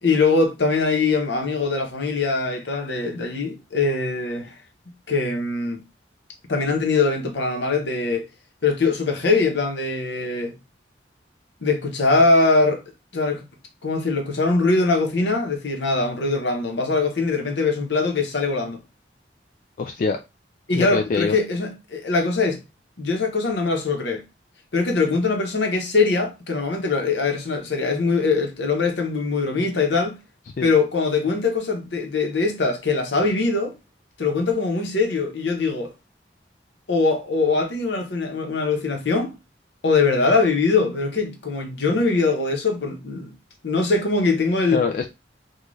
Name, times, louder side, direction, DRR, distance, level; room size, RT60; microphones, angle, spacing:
voice 1, 0.0-4.5 5.1-5.8 6.5-8.3 8.6-10.5 11.6-12.8 13.1-13.4 13.8-18.8 20.7-22.6 23.0-24.2 24.7-30.2 30.6-33.7 34.2-35.9 36.9-39.3 39.8-43.3 43.6-44.8, left 3 dB, 75° left, 0.9 m, -22 dB
voice 2, 19.8-20.2 20.7-21.4 30.6-30.7 44.7-45.1, left 4 dB, 50° left, 0.3 m, -24 dB
3.7 x 2.3 x 3.1 m
head